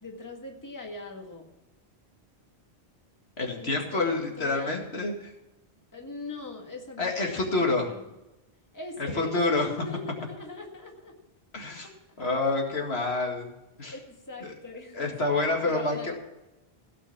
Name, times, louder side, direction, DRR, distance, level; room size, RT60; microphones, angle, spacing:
voice 1, 0.0-1.5 3.5-4.8 5.9-8.0 8.7-11.2 11.8-11.9 13.9-16.1, left 3 dB, 15° left, 1 dB, 1.8 m, -41 dB
voice 2, 3.4-5.3 7.0-7.9 9.0-9.7 11.5-11.9 12.2-13.5 13.8-13.9 14.4-14.5 14.9-16.1, left 3 dB, 75° left, 1 dB, 2.3 m, -28 dB
16.5 x 6.2 x 7.2 m, 0.97 s
omnidirectional pair, 1.1 m